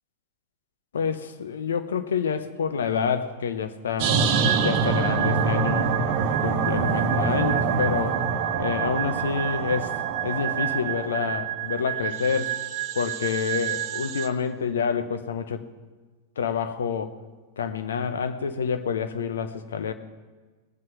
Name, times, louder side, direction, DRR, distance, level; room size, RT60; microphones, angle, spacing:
voice 1, 0.9-4.2 4.6-5.9 6.4-8.3 8.6-9.9 10.2-12.5 13.0-15.7 16.4-17.2 17.6-19.9, left 6 dB, 65° left, 0.9 m, -28 dB
sound 1, 4.0-14.3, right 6 dB, 45° right, 1.0 m, -25 dB
19.5 x 7.7 x 5.9 m
figure-of-eight pair, 90°, 0 cm